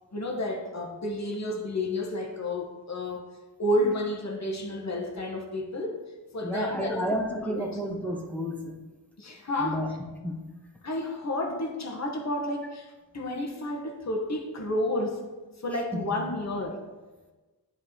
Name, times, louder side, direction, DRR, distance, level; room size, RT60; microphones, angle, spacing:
voice 1, 0.1-3.3 3.6-6.0 6.3-7.1 7.5-7.8 9.2-9.8 10.8-15.2 15.6-16.8, left 1 dB, 40° left, 1 dB, 1.4 m, -31 dB
voice 2, 6.4-8.8 9.6-9.9 10.2-10.6 15.9-16.0, equal, 5° left, 0 dB, 1.0 m, -31 dB
9.6 x 3.5 x 4.4 m, 1.2 s
cardioid pair, 65°, 44 cm